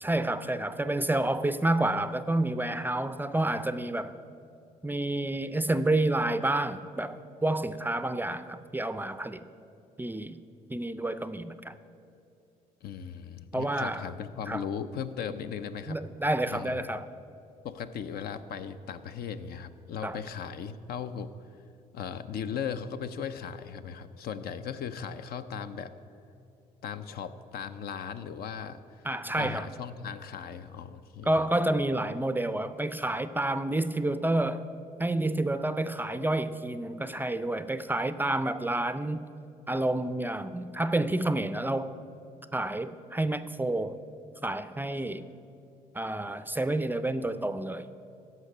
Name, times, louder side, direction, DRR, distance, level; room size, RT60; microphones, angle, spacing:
voice 1, 0.0-4.2 4.8-9.4 10.0-10.4 10.7-11.8 13.5-14.1 14.5-14.6 15.9-17.1 20.0-20.2 29.0-29.7 31.3-34.7 35.0-39.3 39.7-42.0 42.5-44.0 44.4-45.3 45.9-47.9, right 1 dB, 10° right, 13 dB, 0.4 m, -29 dB
voice 2, 12.8-16.0 16.4-16.8 17.6-21.3 21.9-25.9 26.8-29.1 29.4-31.3, left 7 dB, 65° left, 11 dB, 0.5 m, -37 dB
13.5 x 5.2 x 5.3 m, 2.7 s
supercardioid pair, 60°, 18 cm